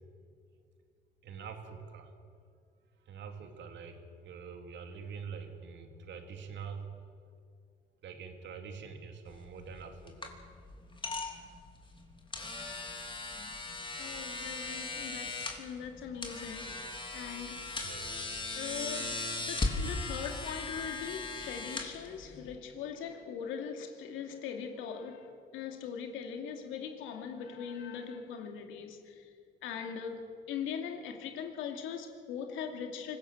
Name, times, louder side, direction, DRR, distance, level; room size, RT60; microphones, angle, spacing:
voice 1, 1.2-2.1 3.1-6.9 8.0-10.3 17.8-18.3, right 6 dB, 65° right, 5 dB, 2.7 m, -45 dB
sound 1, 9.3-22.5, left 3 dB, 25° left, 3.2 m, -38 dB
voice 2, 14.0-17.7 18.5-29.3 29.6-33.2, left 7 dB, 85° left, 4 dB, 2.5 m, -41 dB
25.0 x 15.5 x 7.2 m, 2.3 s
supercardioid pair, 75°, 20 cm